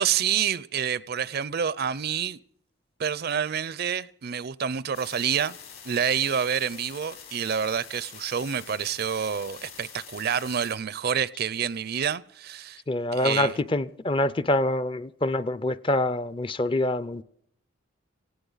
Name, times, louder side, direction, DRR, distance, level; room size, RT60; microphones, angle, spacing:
voice 1, 0.0-2.4 3.0-5.5 5.8-12.8 13.1-13.6, right 8 dB, 50° right, 0.5 m, -28 dB
sound 1, 4.9-10.8, left 7 dB, 85° left, 7.0 m, -45 dB
voice 2, 12.9-17.2, left 2 dB, 25° left, 0.5 m, -25 dB
18.0 x 17.0 x 4.0 m
head